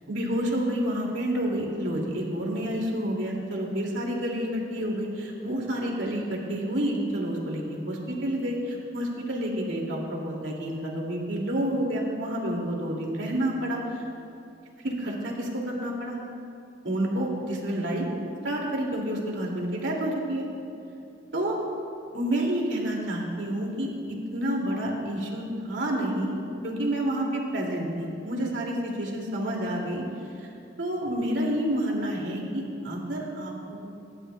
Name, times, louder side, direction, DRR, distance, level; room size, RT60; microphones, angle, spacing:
voice 1, 0.1-14.0 14.8-16.2 16.8-18.1 18.4-20.5 21.3-21.6 22.1-30.0 30.4-30.5 30.8-33.9, right 1 dB, 75° right, -1 dB, 2.3 m, -29 dB
25.0 x 11.5 x 2.2 m, 2.6 s
head